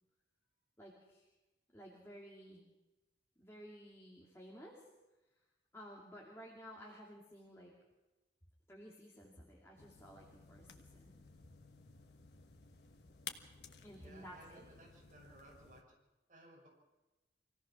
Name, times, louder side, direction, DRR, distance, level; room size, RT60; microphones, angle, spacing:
voice 1, 0.8-1.3 1.7-2.6 3.4-4.9 5.7-7.7 8.7-11.1 13.8-14.6, equal, 15° left, -3 dB, 2.5 m, -54 dB
sound 1, 9.8-15.8, left 6 dB, 70° left, 1.4 m, -55 dB
voice 2, 13.9-15.8 16.3-16.7, right 1 dB, 50° right, -2 dB, 6.4 m, -60 dB
25.5 x 17.0 x 6.2 m, 1.1 s
head